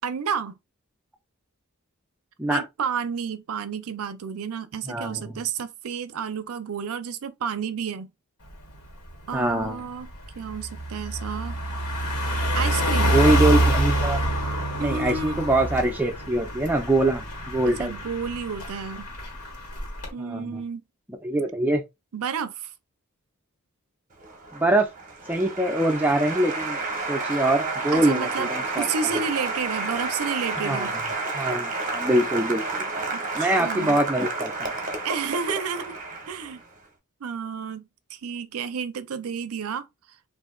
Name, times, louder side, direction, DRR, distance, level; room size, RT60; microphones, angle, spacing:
voice 1, 0.0-0.6 2.5-8.1 9.3-11.6 12.6-13.2 14.8-15.5 17.7-19.1 20.1-20.8 22.1-22.7 27.9-28.5 28.8-31.0 33.1-34.0 35.0-36.0 36.3-36.6 37.2-39.9, right 6 dB, 70° right, 0.4 m, -31 dB
voice 2, 4.9-5.3 9.3-9.8 13.0-14.2 14.8-17.9 20.2-20.6 21.2-21.8 24.5-24.9 25.3-26.8 27.1-29.2 30.6-31.0 31.3-32.9 33.3-34.7, right 1 dB, 10° right, 0.4 m, -24 dB
Car passing by, 8.5-8.8 9.1-20.1, right 1 dB, 80° left, 1.5 m, -26 dB
Applause, 24.2-36.7, right 3 dB, 35° right, 0.7 m, -30 dB
2.5 x 2.2 x 3.6 m
head